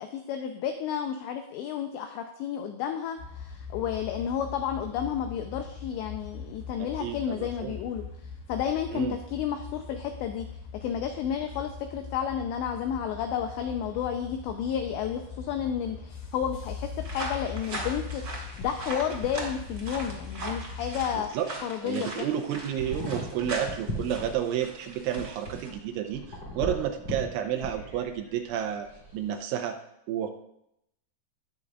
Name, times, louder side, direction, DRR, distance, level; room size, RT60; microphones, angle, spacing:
voice 1, 0.0-8.0 8.5-10.5 10.8-21.3 21.6-22.3, left 8 dB, 90° left, 5 dB, 2.4 m, -31 dB
sound 1, 3.2-21.3, left 5 dB, 65° left, 2.3 m, -41 dB
voice 2, 6.8-7.8 8.9-9.2 21.3-21.5 21.8-28.9 29.1-29.8 30.1-30.3, right 9 dB, 80° right, 5 dB, 3.0 m, -31 dB
sound 2, 13.6-29.3, equal, 35° left, 2.2 m, -43 dB
sound 3, 17.0-25.7, right 2 dB, 30° right, 2.1 m, -40 dB
20.0 x 6.7 x 2.4 m, 0.80 s
omnidirectional pair, 5.8 m